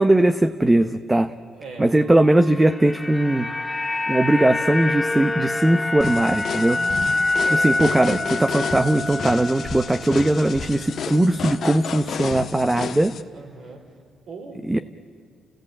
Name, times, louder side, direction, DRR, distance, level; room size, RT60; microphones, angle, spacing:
voice 1, 0.0-1.3 1.8-3.5 4.1-6.8 7.5-13.1 14.7-14.8, right 1 dB, 15° right, 9 dB, 0.8 m, -19 dB
voice 2, 1.6-2.0 6.7-7.8 13.3-13.8 14.3-14.8, right 4 dB, 70° right, 2 dB, 5.1 m, -39 dB
sound 1, 2.4-10.7 10.9-11.1, left 2 dB, 20° left, 0.6 m, -26 dB
sound 2, 6.0-13.2, left 7 dB, 60° left, 1.3 m, -32 dB
30.0 x 17.0 x 8.7 m, 2.1 s
cardioid pair, 90°, 0 cm